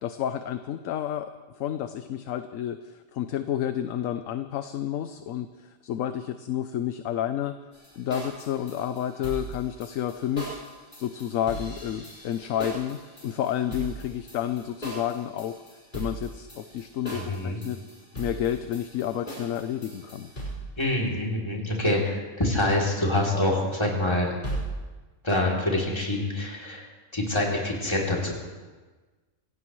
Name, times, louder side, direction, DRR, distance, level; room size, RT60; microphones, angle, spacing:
voice 1, 0.0-7.6 7.9-10.6 11.0-15.6 15.9-17.8 18.2-20.3, left 10 dB, 75° left, 9 dB, 1.0 m, -30 dB
sound 1, 7.7-20.8 24.4-24.8, right 1 dB, 35° left, 5.0 m, -39 dB
voice 2, 17.1-17.6 20.8-24.3 25.2-26.9 27.1-28.3, left 1 dB, 20° left, -3 dB, 3.1 m, -26 dB
26.0 x 17.5 x 3.1 m, 1.3 s
omnidirectional pair, 1.4 m